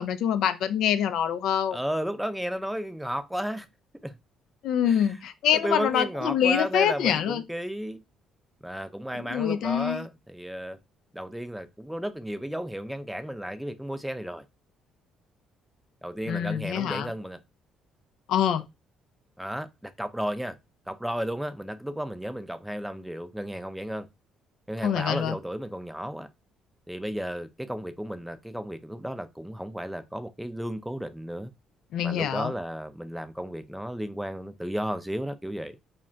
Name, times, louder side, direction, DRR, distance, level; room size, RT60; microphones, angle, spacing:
voice 1, 0.0-1.8 4.6-7.4 9.1-10.0 16.3-17.1 18.3-18.6 24.8-25.4 31.9-32.5, left 9 dB, 75° left, 0.3 m, -25 dB
voice 2, 1.7-3.7 4.0-4.2 4.8-5.2 5.5-8.0 8.6-10.8 11.1-14.4 16.0-17.4 19.4-20.6 20.9-24.1 24.7-26.3 26.9-31.5 32.0-35.8, equal, 5° right, 0.4 m, -33 dB
2.3 x 2.1 x 3.8 m
supercardioid pair, 70°, 0 cm